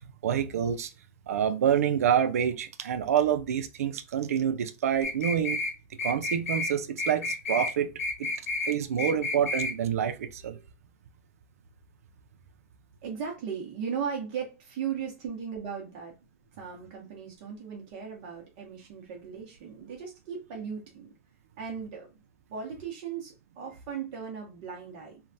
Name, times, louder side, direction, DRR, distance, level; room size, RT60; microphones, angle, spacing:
voice 1, 0.2-0.9 1.3-5.6 6.0-7.9 8.2-8.3 8.6-10.6, right 9 dB, 85° right, 0.5 m, -27 dB
sound 1, 5.0-5.7 6.0-6.7 7.0-7.7 8.0-8.7 9.0-9.7, left 3 dB, 80° left, 0.9 m, -30 dB
voice 2, 13.0-16.1 16.6-21.1 21.6-22.2 22.5-25.2, right 7 dB, 35° right, 0.7 m, -37 dB
3.2 x 2.2 x 2.6 m
supercardioid pair, 175°, 8 cm